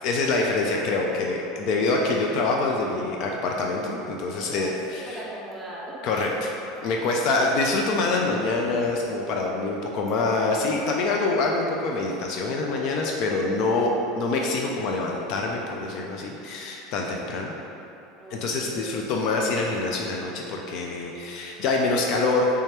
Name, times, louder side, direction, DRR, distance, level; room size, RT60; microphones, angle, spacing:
voice 1, 0.0-5.0 6.0-6.3 6.8-13.9 14.2-17.5 18.3-22.5, left 3 dB, 45° left, 0 dB, 0.3 m, -25 dB
voice 2, 4.4-6.2 8.2-9.0 13.7-14.0 18.1-19.2, right 1 dB, 5° right, -6 dB, 0.6 m, -41 dB
3.3 x 2.9 x 3.2 m, 2.8 s
supercardioid pair, 160°, 0 cm